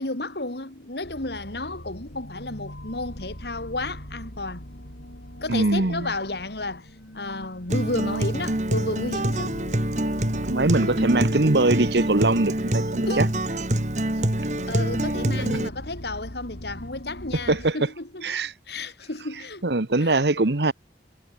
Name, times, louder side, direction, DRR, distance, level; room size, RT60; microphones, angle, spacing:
voice 1, 0.0-4.6 5.4-6.9 7.1-9.6 13.0-13.2 14.7-18.3 18.7-19.6 20.0-20.2, left 2 dB, 70° left, 3.1 m, -32 dB
sound 1, 1.0-17.7, equal, 90° left, 6.7 m, -41 dB
voice 2, 5.5-6.1 10.5-13.3 15.5-15.6 17.5-17.8 18.2-18.5 19.6-20.7, right 2 dB, 75° right, 1.3 m, -22 dB
Acoustic guitar, 7.7-15.7, right 1 dB, 40° right, 2.2 m, -25 dB
head